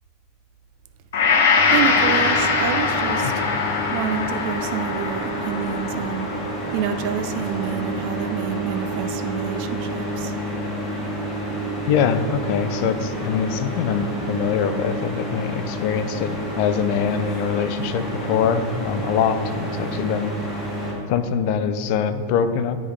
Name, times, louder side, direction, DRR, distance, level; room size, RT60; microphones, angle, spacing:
Gong, 1.1-9.4 9.9-10.0, left 5 dB, 70° left, 0.8 m, -23 dB
sound 1, 1.6-20.9, right 1 dB, 10° left, 1.2 m, -29 dB
voice 1, 1.7-3.4 3.9-6.3 6.7-10.3, right 9 dB, 45° right, 7 dB, 0.3 m, -28 dB
voice 2, 11.9-20.3 21.1-22.8, left 7 dB, 45° left, 10 dB, 0.4 m, -23 dB
9.8 x 3.6 x 3.2 m, 2.3 s
supercardioid pair, 165°, 0 cm